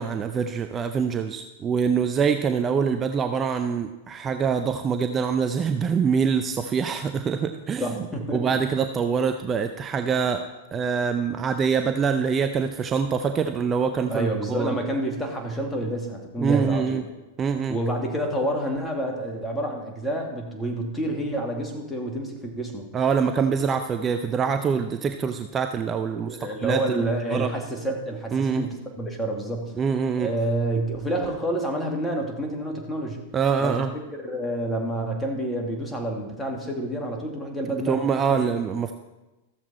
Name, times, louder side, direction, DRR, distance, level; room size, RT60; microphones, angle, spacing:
voice 1, 0.0-7.9 8.3-10.4 10.7-14.7 16.4-17.0 17.4-17.8 22.9-27.0 27.3-27.5 28.3-28.6 29.8-30.3 33.3-33.9 37.7-38.9, right 6 dB, 25° right, 7 dB, 0.6 m, -25 dB
voice 2, 7.8-8.4 14.1-17.0 17.7-22.9 26.1-29.7 30.2-33.2 33.6-33.9 34.2-38.0 38.3-38.4, right 1 dB, 10° left, 1 dB, 2.3 m, -28 dB
14.0 x 7.3 x 4.3 m, 1.1 s
hypercardioid pair, 105°, 0 cm